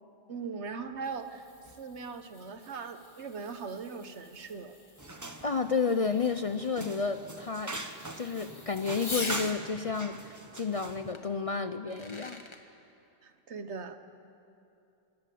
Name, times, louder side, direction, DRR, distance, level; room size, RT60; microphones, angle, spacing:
voice 1, 0.3-4.7 13.2-14.0, right 5 dB, 75° right, 8 dB, 1.4 m, -40 dB
Fireworks, 0.7-9.6 11.1-11.2 11.8-12.6, left 2 dB, 25° left, 1.3 m, -45 dB
sound 1, 5.0-11.1, right 2 dB, 15° right, 1.0 m, -42 dB
voice 2, 5.4-7.8 8.2-12.4, left 5 dB, 40° left, 9 dB, 0.5 m, -31 dB
26.5 x 14.0 x 8.5 m, 2.7 s
omnidirectional pair, 1.2 m